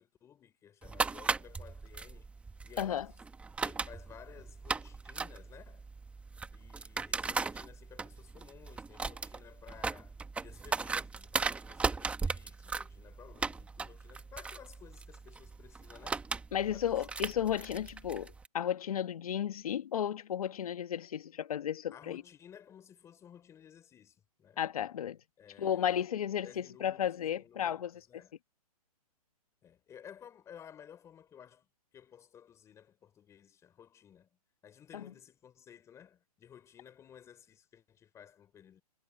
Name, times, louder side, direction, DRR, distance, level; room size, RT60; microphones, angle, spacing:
voice 1, 0.0-2.3 2.6-3.1 3.6-5.9 6.5-16.3 16.7-17.5 21.9-24.6 25.4-28.4 29.6-31.7 31.9-34.4 34.6-38.8, left 9 dB, 15° left, 3.6 m, -55 dB
sound 1, 0.8-18.5, right 4 dB, 5° right, 1.1 m, -38 dB
voice 2, 16.5-22.2 24.6-25.2 25.6-27.9 34.9-35.0, left 9 dB, 65° left, 1.4 m, -33 dB
hypercardioid pair, 150°, 20 cm